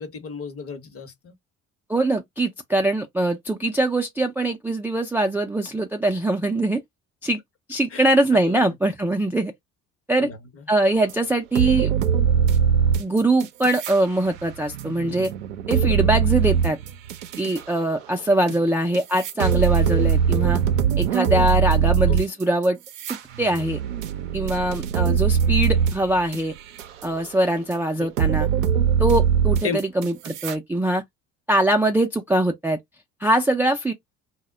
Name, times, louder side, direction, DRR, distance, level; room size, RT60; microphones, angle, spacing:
voice 1, 0.0-1.3 7.9-8.0 8.5-8.6 10.2-10.4 18.5-18.6 22.1-22.2 28.0-28.1 29.6-29.8, left 5 dB, 35° left, 0.9 m, -33 dB
voice 2, 1.9-6.8 7.2-7.4 7.7-9.5 10.1-10.3 10.7-11.9 13.0-15.3 15.7-16.8 17.4-20.6 21.0-22.8 23.1-23.8 24.3-26.5 27.0-28.5 29.0-31.0 31.5-32.8 33.2-33.9, right 1 dB, 5° right, 0.4 m, -22 dB
sound 1, 11.1-11.2 11.5-14.0 14.3-17.6 18.5-18.6 18.9-26.4 26.8-27.3 27.7-27.8 28.2-30.5, right 8 dB, 80° right, 0.5 m, -22 dB
2.1 x 2.0 x 3.6 m
figure-of-eight pair, 55°, 39 cm